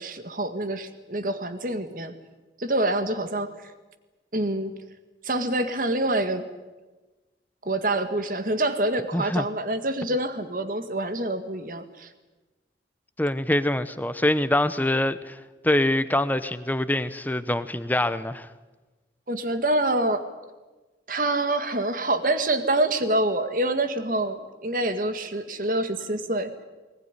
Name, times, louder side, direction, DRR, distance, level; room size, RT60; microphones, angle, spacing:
voice 1, 0.0-2.1 2.6-3.7 4.3-4.7 5.2-6.5 7.6-12.1 19.3-20.3 21.1-26.5, right 1 dB, 50° right, 1.8 m, -26 dB
voice 2, 9.1-9.4 13.2-15.4 15.6-18.5, left 1 dB, 10° left, 0.8 m, -24 dB
20.5 x 20.0 x 9.8 m
head